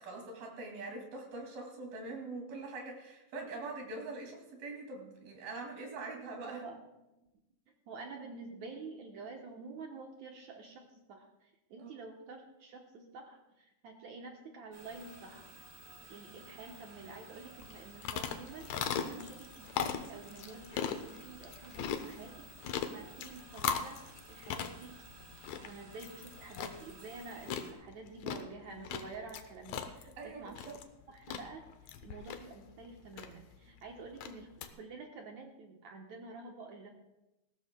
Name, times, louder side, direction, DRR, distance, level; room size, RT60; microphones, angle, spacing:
voice 1, 0.0-6.7 11.8-11.9 29.8-30.8, right 3 dB, 80° right, 1 dB, 4.3 m, -43 dB
voice 2, 6.5-6.8 7.9-15.5 16.1-25.0 25.5-30.7 31.1-31.6 32.0-34.5 34.7-36.9, right 4 dB, 65° right, 1 dB, 2.0 m, -49 dB
sound 1, 14.7-27.7, right 2 dB, 50° right, 1.3 m, -54 dB
sound 2, 17.6-34.7, left 8 dB, 80° left, 1.5 m, -40 dB
19.0 x 16.0 x 2.2 m, 0.94 s
omnidirectional pair, 4.1 m